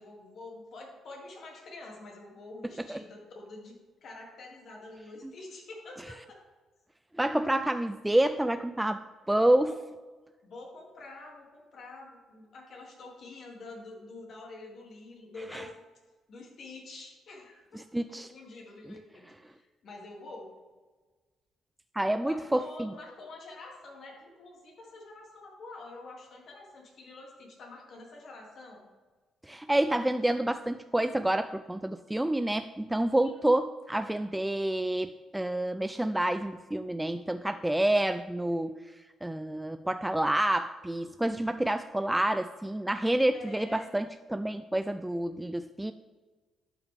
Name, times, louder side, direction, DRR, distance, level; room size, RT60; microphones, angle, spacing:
voice 1, 0.0-6.4 9.3-9.7 10.4-15.7 16.3-20.5 22.2-28.9 33.2-33.5 43.3-43.9, left 2 dB, 60° left, -1 dB, 2.5 m, -47 dB
voice 2, 7.2-9.7 15.5-15.6 17.9-18.3 21.9-22.9 29.5-38.8 39.2-45.9, right 1 dB, 10° right, 10 dB, 0.3 m, -28 dB
11.5 x 5.8 x 3.5 m, 1.3 s
cardioid pair, 90°, 0 cm